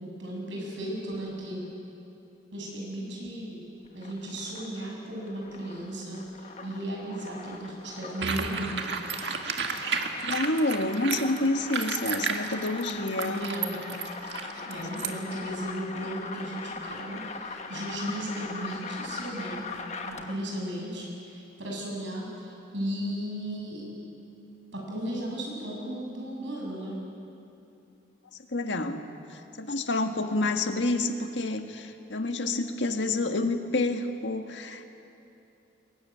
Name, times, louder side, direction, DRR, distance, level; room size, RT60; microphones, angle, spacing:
voice 1, 0.0-1.6 2.5-3.6 3.9-6.2 6.6-8.9 13.1-13.8 14.6-19.7 20.0-23.8 24.7-26.9, right 1 dB, 85° right, -2 dB, 7.6 m, -35 dB
sound 1, 3.8-20.5, left 3 dB, 35° left, 1.3 m, -41 dB
sound 2, 8.2-15.1, right 5 dB, 70° right, 1.8 m, -32 dB
voice 2, 10.2-13.4 14.9-15.0 28.5-29.0 29.3-34.9, left 2 dB, 80° left, 6 dB, 1.7 m, -28 dB
22.5 x 20.0 x 9.6 m, 2.8 s
head